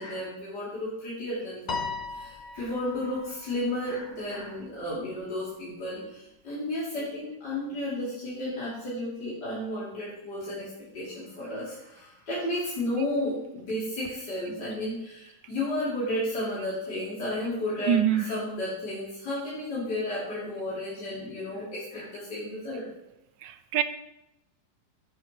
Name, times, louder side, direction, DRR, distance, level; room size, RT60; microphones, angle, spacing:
voice 1, 0.0-10.7 10.9-22.9, left 1 dB, 65° left, 3.6 m, -33 dB
Piano, 1.7-4.2, left 4 dB, 45° left, 0.6 m, -37 dB
voice 2, 17.9-18.4 23.4-23.8, right 9 dB, 80° right, 1.4 m, -25 dB
15.5 x 8.0 x 3.0 m
omnidirectional pair, 2.0 m